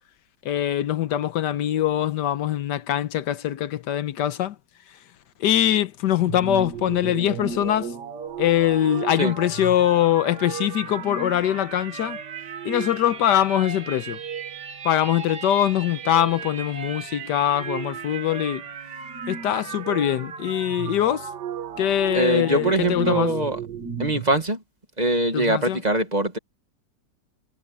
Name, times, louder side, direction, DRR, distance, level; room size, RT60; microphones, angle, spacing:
voice 1, 0.4-4.6 5.4-7.9 8.4-12.2 12.6-14.2 14.8-18.6 19.3-21.3 21.8-23.3 25.3-25.8, left 11 dB, 80° left, 1.4 m, -23 dB
sound 1, 6.2-24.3, right 7 dB, 75° right, 2.0 m, -35 dB
voice 2, 22.1-23.6 24.0-24.6 25.0-26.4, right 2 dB, 25° right, 1.7 m, -22 dB
omnidirectional pair, 1.8 m